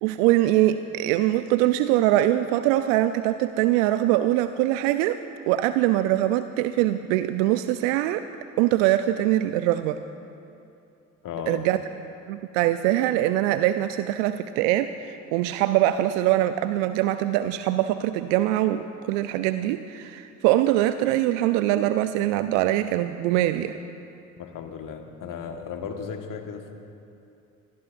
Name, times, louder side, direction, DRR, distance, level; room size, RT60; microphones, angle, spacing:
voice 1, 0.0-5.2 5.5-8.2 8.6-10.0 11.5-11.8 12.3-23.7, right 14 dB, 70° right, 11 dB, 0.6 m, -23 dB
voice 2, 11.2-11.7 24.4-26.7, left 7 dB, 50° left, 4 dB, 1.6 m, -35 dB
25.5 x 20.5 x 2.6 m, 2.7 s
figure-of-eight pair, 50°, 40 cm